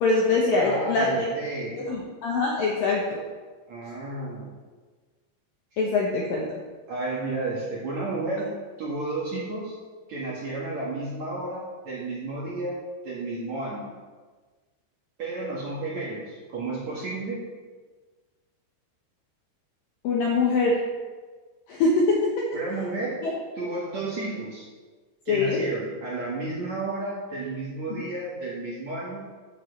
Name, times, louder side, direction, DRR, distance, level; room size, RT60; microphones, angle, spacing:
voice 1, 0.0-1.2 1.9-3.2 5.8-6.5 20.0-20.8 21.7-22.4 23.2-23.3 25.3-25.6, left 3 dB, 75° left, -2 dB, 2.1 m, -23 dB
voice 2, 0.6-1.9 3.7-4.5 6.9-9.8 10.1-13.9 15.2-17.4 22.5-23.3 23.5-24.7 25.3-29.2, right 2 dB, 55° right, -6 dB, 2.2 m, -32 dB
14.5 x 8.7 x 3.3 m, 1.4 s
omnidirectional pair, 5.5 m